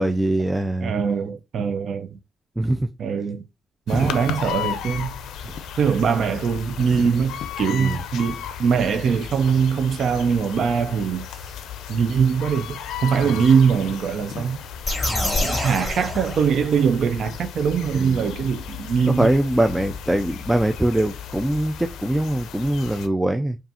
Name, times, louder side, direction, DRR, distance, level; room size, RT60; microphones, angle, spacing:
voice 1, 0.0-0.9 2.6-2.9 3.9-4.1 7.8-8.0 13.3-13.4 15.1-15.4 17.9-18.3 19.1-23.6, right 1 dB, 10° right, 0.3 m, -23 dB
voice 2, 0.8-2.2 3.0-3.4 3.9-5.1 5.8-11.3 11.9-14.6 15.4-19.3, right 6 dB, 60° right, 0.5 m, -22 dB
sound 1, 3.9-23.1, left 8 dB, 80° left, 0.5 m, -35 dB
sound 2, 14.8-17.0, left 2 dB, 15° left, 2.3 m, -26 dB
5.3 x 2.4 x 2.7 m
cardioid pair, 90°, 0 cm